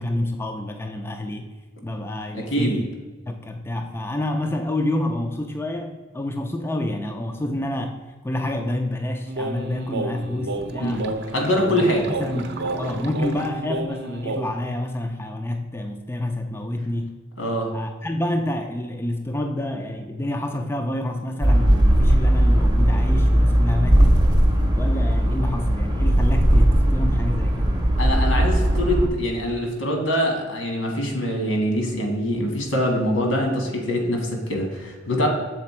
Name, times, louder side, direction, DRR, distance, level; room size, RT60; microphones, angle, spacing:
voice 1, 0.0-1.5 1.8-2.8 3.3-11.1 11.7-17.1 17.7-24.2 24.8-27.8, left 1 dB, 10° left, 5 dB, 0.3 m, -28 dB
voice 2, 2.3-2.8 10.8-11.0 11.3-12.1 17.4-17.7 28.0-35.3, equal, 80° left, 2 dB, 1.5 m, -24 dB
sound 1, 9.3-14.5, right 2 dB, 55° right, 0.6 m, -30 dB
sound 2, 21.4-29.1, equal, 20° right, 0.7 m, -18 dB
6.7 x 4.2 x 4.3 m, 1.4 s
head